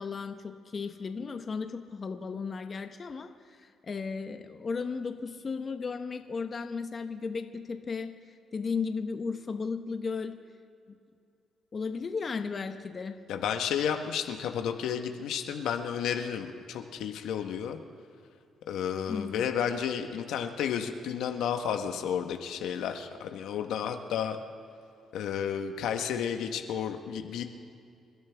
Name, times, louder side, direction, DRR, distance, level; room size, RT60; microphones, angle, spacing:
voice 1, 0.0-10.4 10.9-11.0 11.7-13.2 19.1-19.5, left 5 dB, 40° left, 7 dB, 1.0 m, -35 dB
voice 2, 13.3-17.8 18.7-24.4 25.1-27.4, left 8 dB, 85° left, 5 dB, 1.1 m, -32 dB
28.0 x 12.5 x 3.4 m, 2.5 s
cardioid pair, 90°, 0 cm